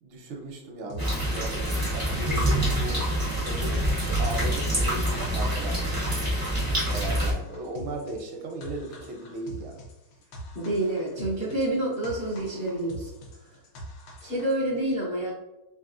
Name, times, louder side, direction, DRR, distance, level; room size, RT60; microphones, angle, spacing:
voice 1, 0.0-3.1 3.4-6.4 6.9-9.8, right 2 dB, 80° right, 1 dB, 1.6 m, -37 dB
sound 1, 0.9-14.6, equal, 70° left, 1.4 m, -43 dB
sound 2, 1.0-7.3, right 1 dB, 25° right, 0.4 m, -26 dB
voice 2, 10.5-13.1 14.2-15.3, right 1 dB, 50° left, -6 dB, 0.6 m, -28 dB
4.0 x 3.2 x 2.4 m, 0.95 s
omnidirectional pair, 2.2 m